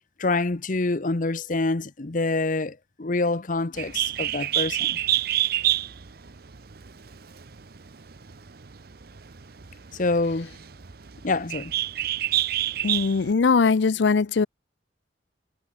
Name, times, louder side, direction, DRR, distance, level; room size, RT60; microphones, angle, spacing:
voice 1, 0.2-5.0 9.9-10.5 11.2-11.7, left 3 dB, 45° left, 0.9 m, -26 dB
Bird, 3.7-13.3, right 14 dB, 60° right, 0.8 m, -28 dB
voice 2, 12.8-14.5, left 4 dB, 75° left, 0.5 m, -21 dB
head